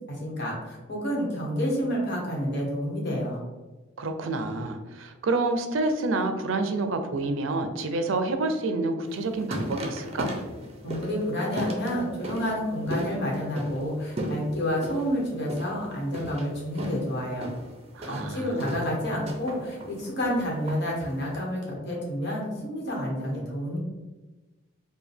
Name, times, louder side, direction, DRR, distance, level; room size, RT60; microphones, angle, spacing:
voice 1, 0.1-3.4 10.8-17.5 18.1-23.8, equal, 60° left, -2 dB, 1.2 m, -29 dB
voice 2, 4.0-10.3 17.9-18.9, right 2 dB, 80° right, 7 dB, 0.5 m, -28 dB
sound 1, 9.1-21.4, equal, 30° right, 0.6 m, -37 dB
4.7 x 2.2 x 3.4 m, 1.2 s
head